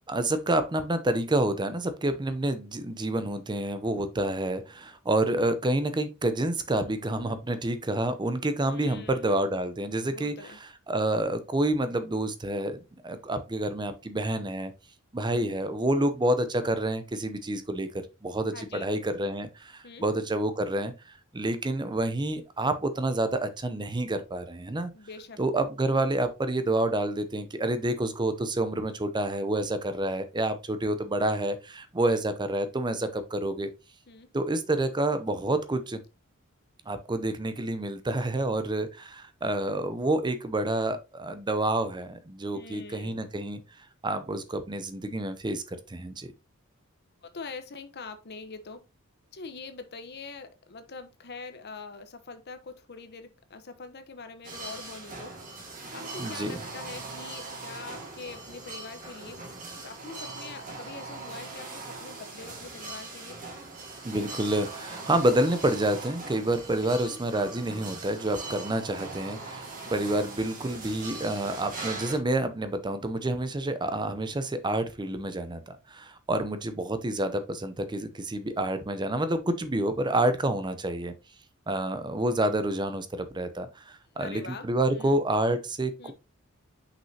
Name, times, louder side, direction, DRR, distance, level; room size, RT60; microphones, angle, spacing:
voice 1, 0.1-10.3 10.9-14.7 15.1-24.9 25.4-33.7 34.3-36.0 36.9-46.3 56.2-56.6 64.0-81.1 81.7-86.1, right 1 dB, 20° right, 0.6 m, -28 dB
voice 2, 8.6-9.5 9.9-10.6 18.5-18.9 19.8-20.1 24.9-25.4 32.0-32.2 34.1-34.3 42.5-43.2 47.2-48.8 49.3-59.4 59.8-63.4 66.8-67.2 84.2-85.2 86.0-86.1, left 4 dB, 50° left, 0.9 m, -44 dB
sound 1, 54.4-72.2, right 3 dB, 40° right, 2.0 m, -40 dB
6.1 x 5.6 x 2.7 m
head